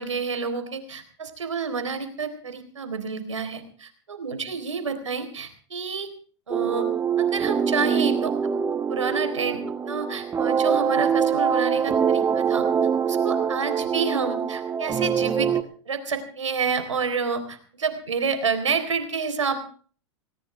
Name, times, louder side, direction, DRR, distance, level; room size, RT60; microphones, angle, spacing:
voice 1, 0.0-6.1 6.5-6.9 7.2-8.3 8.9-9.6 9.8-12.7 13.1-15.5 15.9-19.6, right 5 dB, 90° right, 8 dB, 3.9 m, -29 dB
sound 1, 6.5-15.6, right 7 dB, 15° right, 1.1 m, -24 dB
19.5 x 19.5 x 3.4 m, 0.43 s
hypercardioid pair, 110°, 15 cm